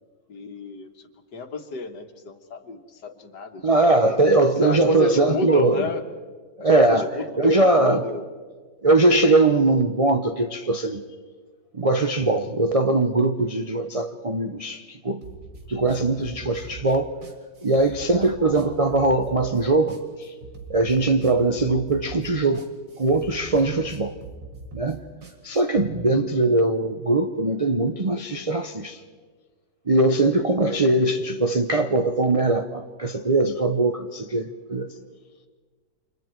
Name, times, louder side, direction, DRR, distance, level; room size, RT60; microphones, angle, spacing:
voice 1, 0.3-6.1 6.6-8.2 24.1-24.2 29.9-30.4, left 3 dB, 70° left, 2.0 m, -32 dB
voice 2, 3.6-5.9 6.6-7.1 7.4-8.0 8.8-11.0 11.7-15.2 15.7-17.1 17.6-20.3 20.7-22.7 23.0-24.1 24.7-25.0 25.4-29.0 29.9-34.9, right 2 dB, 50° right, 0.4 m, -21 dB
sound 1, 15.2-25.9, right 4 dB, 85° right, 2.8 m, -42 dB
29.5 x 26.5 x 4.6 m
omnidirectional pair, 1.9 m